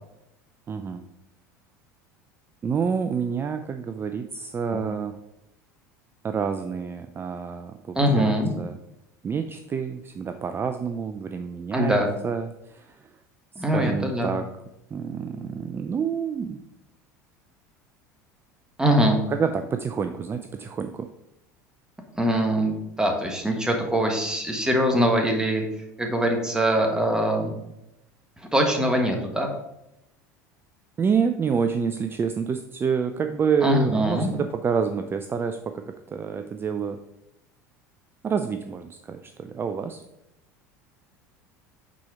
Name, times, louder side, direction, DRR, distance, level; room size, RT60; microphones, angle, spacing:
voice 1, 0.7-1.0 2.6-5.2 6.2-8.8 9.2-12.0 12.2-13.1 13.6-14.5 14.9-16.6 19.3-21.1 31.0-37.0 38.2-40.0, right 6 dB, 25° right, 8 dB, 0.4 m, -28 dB
voice 2, 7.9-8.5 11.7-12.1 13.5-14.3 18.8-19.2 22.1-25.6 26.0-27.5 28.5-29.5 33.6-34.3, equal, 10° right, 2 dB, 1.5 m, -22 dB
6.1 x 4.4 x 4.9 m, 0.87 s
hypercardioid pair, 75°, 9 cm